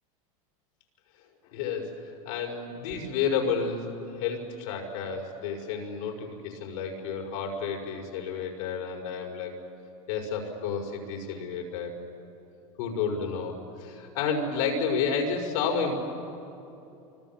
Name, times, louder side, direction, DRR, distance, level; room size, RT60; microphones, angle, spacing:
voice 1, 1.5-9.5 10.1-12.0 12.8-15.9, left 5 dB, 70° left, 1 dB, 5.4 m, -31 dB
29.5 x 25.0 x 7.5 m, 2.9 s
hypercardioid pair, 100°, 18 cm